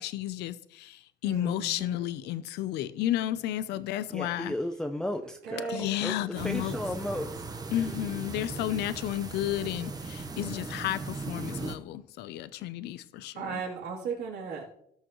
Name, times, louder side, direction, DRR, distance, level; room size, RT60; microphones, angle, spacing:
voice 1, 0.0-4.5 5.7-6.8 7.7-13.6, left 13 dB, 80° left, 0.6 m, -32 dB
voice 2, 1.2-2.0 5.4-5.9 13.3-14.8, right 5 dB, 80° right, 3.2 m, -36 dB
voice 3, 4.1-5.7 6.0-7.4, left 1 dB, 5° left, 0.6 m, -34 dB
sound 1, 6.4-11.8, right 3 dB, 20° right, 1.0 m, -38 dB
17.5 x 6.4 x 3.1 m
cardioid pair, 110°, 17 cm